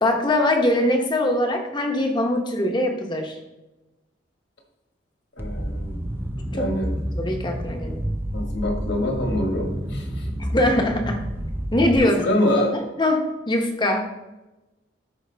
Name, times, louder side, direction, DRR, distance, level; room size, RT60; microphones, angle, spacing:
voice 1, 0.0-3.4 6.5-6.7 7.2-8.1 10.4-11.2 11.7-12.1 12.5-14.1, left 1 dB, 25° left, 3 dB, 0.9 m, -22 dB
voice 2, 5.4-6.0 6.5-6.9 8.3-10.3 11.9-12.7, left 1 dB, 60° left, 2 dB, 1.7 m, -25 dB
sound 1, 5.4-12.0, equal, 10° right, 0.5 m, -29 dB
12.5 x 5.0 x 3.4 m, 1.0 s
head